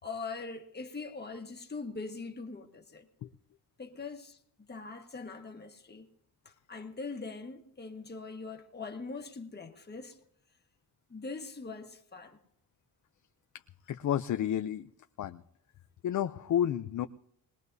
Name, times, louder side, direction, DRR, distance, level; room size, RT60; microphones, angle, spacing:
voice 1, 0.0-3.1 3.8-6.1 6.4-10.2 11.1-12.4, left 4 dB, 25° left, 1.6 m, -42 dB
voice 2, 13.9-14.9 15.2-15.4 16.0-17.1, left 10 dB, 50° left, 0.5 m, -30 dB
22.0 x 20.0 x 2.7 m
cardioid pair, 115°, 39 cm